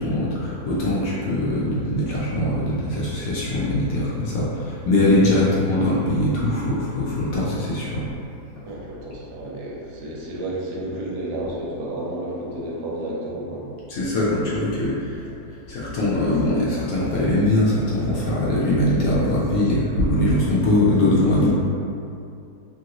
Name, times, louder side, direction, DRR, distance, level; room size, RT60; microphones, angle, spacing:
voice 1, 0.0-8.1 13.9-15.3 15.7-21.5, left 1 dB, 70° left, -7 dB, 0.9 m, -21 dB
voice 2, 8.6-13.7, right 1 dB, 80° right, -4 dB, 1.2 m, -31 dB
2.9 x 2.5 x 2.8 m, 2.6 s
omnidirectional pair, 1.8 m